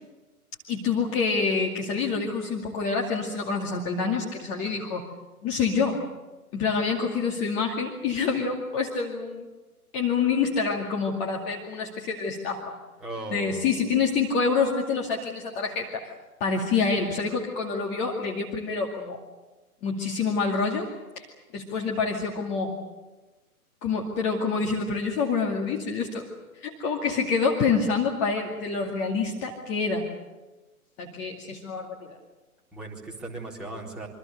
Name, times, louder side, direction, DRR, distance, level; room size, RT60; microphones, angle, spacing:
voice 1, 0.7-5.0 5.4-6.0 6.5-9.5 9.9-12.7 13.3-16.1 16.4-19.2 19.8-20.9 21.2-21.3 21.5-22.7 23.8-26.2 26.5-30.1 31.0-32.2, left 5 dB, 20° left, 0 dB, 2.4 m, -27 dB
voice 2, 13.0-13.8 32.7-34.1, right 2 dB, ahead, -5 dB, 4.1 m, -37 dB
27.5 x 25.0 x 6.7 m, 1.2 s
figure-of-eight pair, 130°, 45 cm